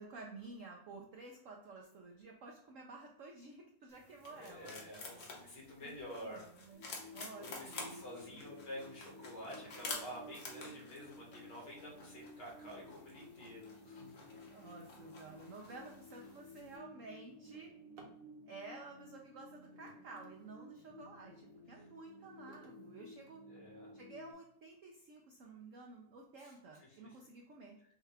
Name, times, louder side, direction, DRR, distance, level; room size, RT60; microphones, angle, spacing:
voice 1, 0.0-5.0 5.8-6.8 7.1-8.1 14.5-17.7 18.5-23.4 23.9-27.8, right 3 dB, 70° right, 1 dB, 0.7 m, -52 dB
sound 1, 3.9-16.8, left 3 dB, 50° left, 1.1 m, -51 dB
voice 2, 4.3-6.4 7.4-14.4 23.4-23.9 26.4-26.5 26.9-27.0, equal, 70° left, -3 dB, 2.3 m, -49 dB
sound 2, 6.7-24.3, left 2 dB, 90° left, 2.4 m, -55 dB
Drawer open or close, 16.4-18.3 19.3-20.9 21.5-23.9 24.6-24.7 25.1-25.2 25.6-26.0, right 2 dB, 55° right, 1.2 m, -65 dB
6.3 x 2.3 x 3.3 m, 0.77 s
omnidirectional pair, 1.9 m